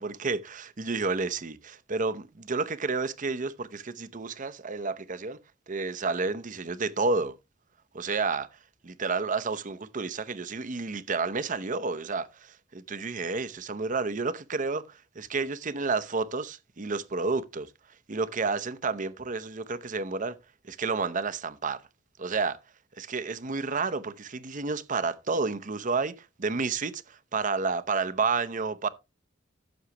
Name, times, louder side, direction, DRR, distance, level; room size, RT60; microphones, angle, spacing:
voice 1, 0.0-5.4 5.7-7.3 7.9-8.5 8.8-17.7 18.1-20.4 20.7-21.8 22.2-22.6 23.0-28.9, right 4 dB, 45° right, 0.8 m, -30 dB
14.5 x 7.2 x 2.9 m
head